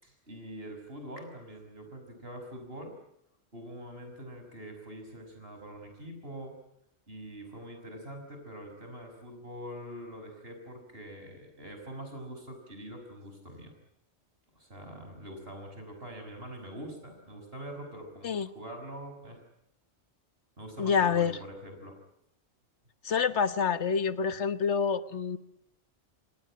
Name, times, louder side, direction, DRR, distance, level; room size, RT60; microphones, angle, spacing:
voice 1, 0.0-2.9 3.5-6.6 7.1-13.7 14.5-19.4 20.6-22.0, equal, 60° right, 5 dB, 6.4 m, -44 dB
voice 2, 20.8-21.4 23.0-25.4, left 6 dB, 85° left, 13 dB, 1.5 m, -27 dB
27.5 x 18.5 x 8.7 m, 0.78 s
omnidirectional pair, 1.1 m